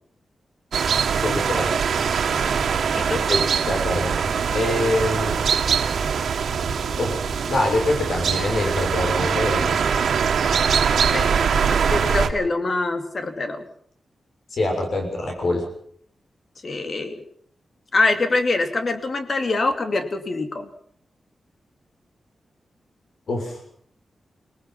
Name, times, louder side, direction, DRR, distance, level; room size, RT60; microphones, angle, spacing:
sound 1, 0.7-12.3, right 6 dB, 90° right, 1.8 m, -22 dB
voice 1, 1.2-1.7 3.3-4.2 4.5-5.4 7.0-7.2 7.5-10.0 14.5-15.7 23.3-23.6, left 1 dB, 75° left, 2 dB, 6.8 m, -24 dB
voice 2, 2.9-3.3 11.1-11.3 11.7-13.7 16.6-17.2 17.9-20.7, left 3 dB, 45° left, 7 dB, 2.6 m, -24 dB
25.0 x 19.0 x 5.9 m, 0.62 s
wide cardioid pair, 105°, 0 cm